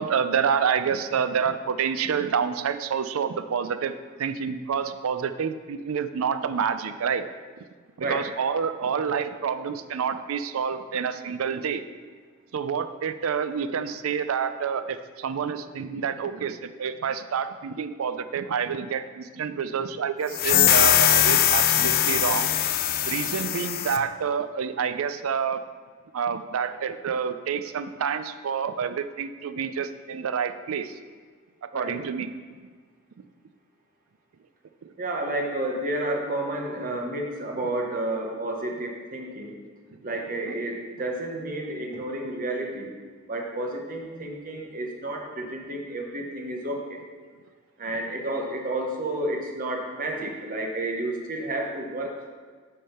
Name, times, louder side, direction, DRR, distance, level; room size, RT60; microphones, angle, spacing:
voice 1, 0.0-3.9 4.2-7.2 8.0-11.8 12.5-22.5 23.1-25.6 26.1-31.0 31.7-32.3 34.8-34.9 40.4-40.5, right 7 dB, 75° right, 11 dB, 0.4 m, -28 dB
sound 1, 20.3-24.0, left 10 dB, 45° left, 0.4 m, -21 dB
voice 2, 35.0-39.5 40.0-42.9 43.3-47.0 47.8-52.3, right 1 dB, 40° right, 1 dB, 1.0 m, -31 dB
8.3 x 3.6 x 5.7 m, 1.5 s
head